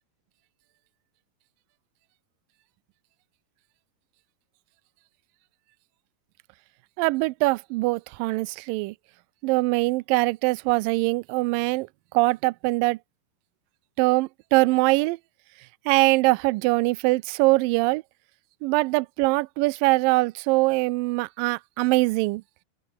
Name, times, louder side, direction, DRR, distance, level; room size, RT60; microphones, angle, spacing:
voice 1, 7.0-8.9 9.4-11.9 12.1-13.0 14.0-15.2 15.9-18.0 18.6-22.4, right 23 dB, 85° right, 2.0 m, -22 dB
open air
omnidirectional pair, 4.6 m